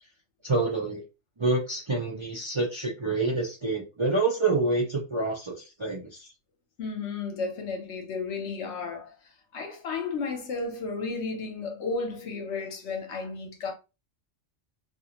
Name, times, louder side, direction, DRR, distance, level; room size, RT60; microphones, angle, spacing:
voice 1, 0.4-1.0 1.4-6.3, right 3 dB, 35° right, 0.5 m, -27 dB
voice 2, 6.8-13.7, left 4 dB, 75° left, 1.0 m, -33 dB
2.5 x 2.4 x 2.8 m
omnidirectional pair, 1.2 m